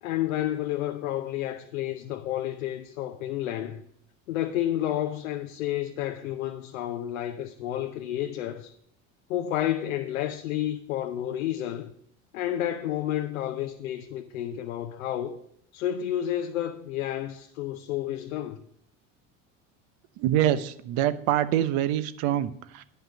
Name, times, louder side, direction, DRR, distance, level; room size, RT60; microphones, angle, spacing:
voice 1, 0.0-3.8 4.3-8.8 9.3-11.9 12.3-15.4 15.7-18.6, left 12 dB, 90° left, 0.8 m, -30 dB
voice 2, 20.2-22.8, right 12 dB, 65° right, 0.9 m, -25 dB
9.3 x 5.5 x 7.4 m
supercardioid pair, 90°, 39 cm